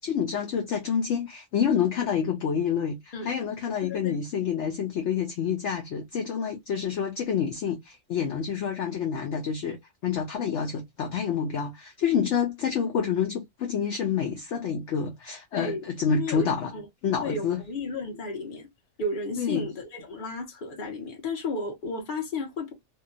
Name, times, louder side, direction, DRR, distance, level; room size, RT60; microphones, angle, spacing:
voice 1, 0.0-16.7 17.0-17.6 19.4-19.7, left 7 dB, 65° left, 0.8 m, -28 dB
voice 2, 3.8-4.2 15.5-15.8 16.1-16.8 17.2-18.7 19.0-22.7, left 2 dB, 40° left, 0.9 m, -33 dB
2.7 x 2.3 x 2.5 m
omnidirectional pair, 1.5 m